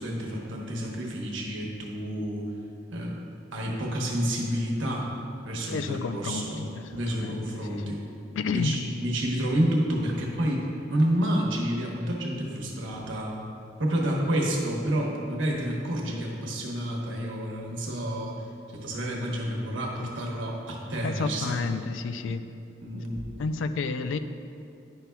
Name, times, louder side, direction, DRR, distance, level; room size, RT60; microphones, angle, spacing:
voice 1, 0.0-2.5 2.9-3.2 3.5-5.1 5.4-8.0 8.5-13.4 13.8-18.4 18.7-21.6 22.1-22.3 22.8-23.2, equal, 90° right, -1 dB, 1.1 m, -29 dB
voice 2, 5.7-7.4 7.6-8.0 8.3-8.8 21.0-22.4 23.4-24.2, left 4 dB, 90° left, 10 dB, 0.4 m, -31 dB
9.7 x 5.8 x 2.3 m, 2.6 s
head